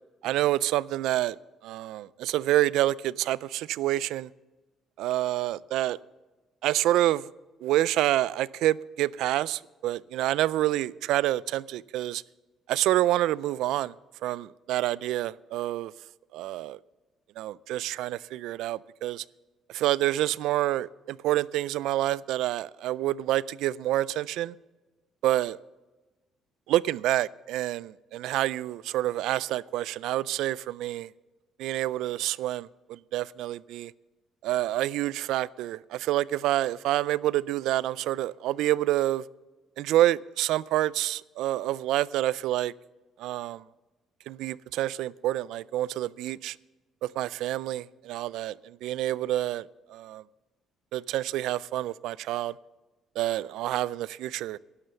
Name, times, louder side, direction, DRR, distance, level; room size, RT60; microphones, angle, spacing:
voice 1, 0.2-1.4 1.6-4.3 5.0-6.0 6.6-7.3 7.6-12.2 12.7-13.9 14.2-15.9 16.3-16.8 17.4-19.2 19.7-24.5 25.2-25.6 26.7-31.1 31.6-33.9 34.4-39.2 39.8-42.7 43.2-43.6 44.3-46.6 47.0-50.2 50.9-52.5 53.2-54.6, right 14 dB, 85° right, 21 dB, 0.3 m, -28 dB
12.5 x 11.0 x 7.0 m, 1.2 s
cardioid pair, 150°, 0 cm